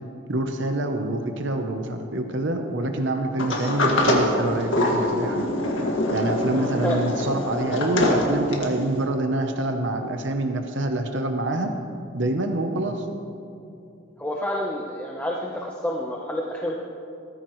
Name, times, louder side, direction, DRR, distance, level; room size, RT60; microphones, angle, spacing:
voice 1, 0.3-5.5 6.1-11.7 12.1-13.1, right 1 dB, 65° right, 5 dB, 0.9 m, -26 dB
Sliding door, 3.4-8.8, left 1 dB, 80° left, 2.0 m, -24 dB
voice 2, 6.6-7.0 14.2-16.9, left 1 dB, 10° left, -2 dB, 0.9 m, -29 dB
17.5 x 14.5 x 3.2 m, 2.6 s
head